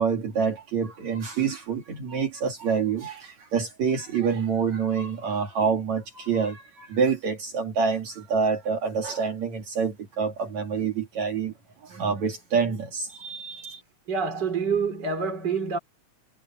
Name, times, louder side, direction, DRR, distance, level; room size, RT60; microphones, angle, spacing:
voice 1, 0.0-11.5 11.8-13.8, right 5 dB, 65° right, 3.9 m, -27 dB
voice 2, 14.1-15.8, right 5 dB, 30° right, 4.5 m, -27 dB
omnidirectional pair, 3.5 m